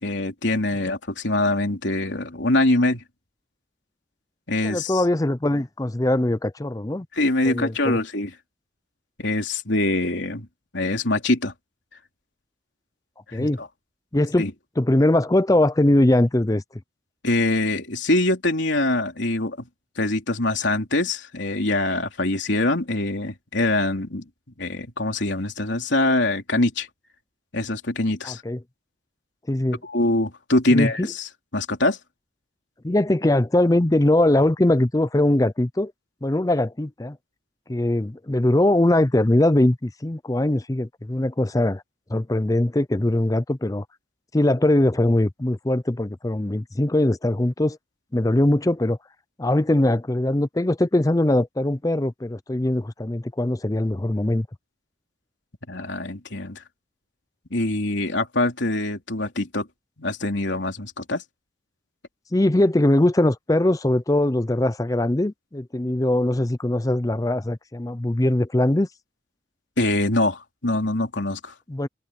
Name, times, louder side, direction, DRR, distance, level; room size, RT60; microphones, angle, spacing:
voice 1, 0.0-3.0 4.5-5.0 7.1-8.3 9.2-10.5 10.7-11.5 13.3-13.7 14.4-14.5 17.2-19.7 20.0-24.2 24.6-26.9 27.5-28.4 29.8-32.0 55.7-56.6 57.5-59.7 60.0-61.2 69.8-71.5, left 2 dB, 70° left, 3.4 m, -24 dB
voice 2, 4.6-7.1 7.4-8.0 13.3-13.6 14.1-14.5 14.8-16.6 28.2-28.6 29.5-29.8 30.7-31.1 32.8-35.9 36.2-37.2 37.7-41.8 42.1-43.8 44.3-47.8 48.1-49.0 49.4-54.5 62.3-68.9 71.7-71.9, left 1 dB, 20° left, 0.5 m, -21 dB
head